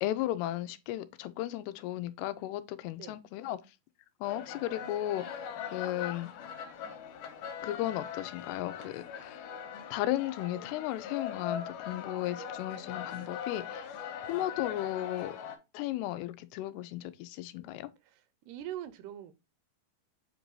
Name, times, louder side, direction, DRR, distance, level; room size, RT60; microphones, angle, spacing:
voice 1, 0.0-3.6 4.2-6.3 7.6-9.4 9.9-13.9 14.3-15.4 15.7-17.9, left 14 dB, 90° left, 2.6 m, -35 dB
sound 1, 4.2-15.6, left 7 dB, 70° left, 2.8 m, -41 dB
voice 2, 18.0-19.3, right 12 dB, 85° right, 2.7 m, -43 dB
7.9 x 2.7 x 4.5 m
omnidirectional pair, 4.6 m